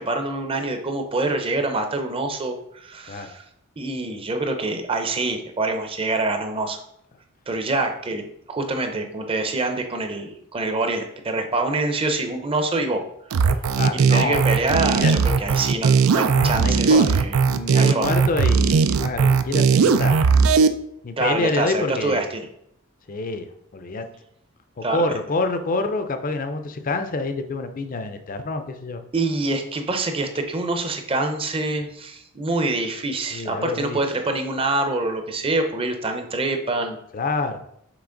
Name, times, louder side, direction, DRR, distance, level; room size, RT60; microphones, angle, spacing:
voice 1, 0.0-3.4 3.8-6.8 7.5-13.0 13.9-17.4 17.7-18.1 21.2-22.5 24.8-25.1 29.1-37.0, right 2 dB, 25° right, 6 dB, 0.6 m, -25 dB
sound 1, 13.3-20.7, right 5 dB, 85° right, 0.4 m, -18 dB
voice 2, 13.8-15.1 16.3-17.2 17.5-20.5 21.0-22.2 23.1-23.5 23.7-24.1 24.8-29.0 33.3-34.0 37.1-37.6, left 3 dB, 40° left, 8 dB, 0.5 m, -27 dB
6.0 x 4.1 x 3.8 m, 0.74 s
head